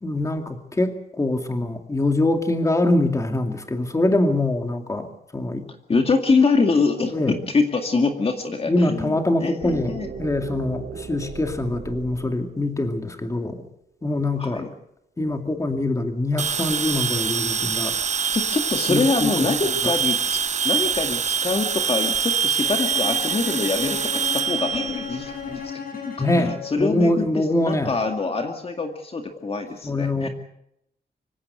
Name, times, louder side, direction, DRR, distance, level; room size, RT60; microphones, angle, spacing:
voice 1, 0.0-5.7 7.1-7.4 8.7-13.7 14.0-14.7 15.2-17.9 18.9-19.5 26.2-28.0 29.8-30.3, left 2 dB, 20° left, 5 dB, 2.4 m, -24 dB
voice 2, 5.7-10.1 14.4-14.7 18.3-30.3, left 4 dB, 35° left, 4 dB, 2.2 m, -25 dB
sound 1, 9.6-13.5, right 6 dB, 65° right, 2.0 m, -37 dB
sound 2, 16.4-25.6, right 6 dB, 45° right, 0.8 m, -25 dB
Bowed string instrument, 22.6-26.8, left 6 dB, 65° left, 6.0 m, -35 dB
25.5 x 16.5 x 7.9 m, 0.76 s
wide cardioid pair, 155°, 16 cm